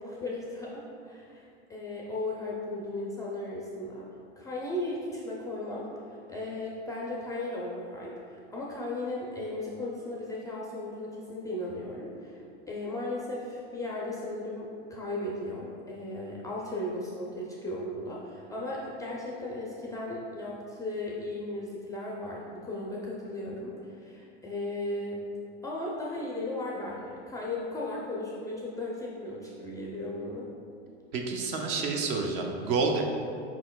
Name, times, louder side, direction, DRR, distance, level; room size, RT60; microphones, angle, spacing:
voice 1, 0.0-4.0 4.4-25.2 25.6-30.5, left 1 dB, 10° left, -4 dB, 0.4 m, -36 dB
voice 2, 31.1-33.0, right 4 dB, 45° right, 2 dB, 0.6 m, -29 dB
5.1 x 4.2 x 2.3 m, 2.5 s
hypercardioid pair, 115°, 34 cm